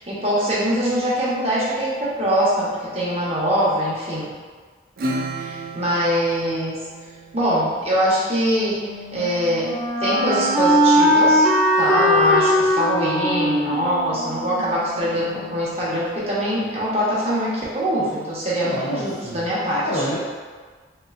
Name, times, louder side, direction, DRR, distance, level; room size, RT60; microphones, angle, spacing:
voice 1, 0.0-4.3 5.4-6.8 7.3-8.8 9.1-9.7 10.0-11.5 11.7-20.0, equal, 35° right, -8 dB, 0.8 m, -23 dB
Acoustic guitar / Strum, 5.0-7.9, right 1 dB, 55° right, 0.4 m, -32 dB
Wind instrument woodwind instrument, 8.8-15.6, equal, 5° left, 0.5 m, -20 dB
voice 2, 18.5-19.5 19.8-20.2, equal, 70° left, -8 dB, 0.6 m, -28 dB
3.0 x 2.9 x 2.4 m, 1.5 s
head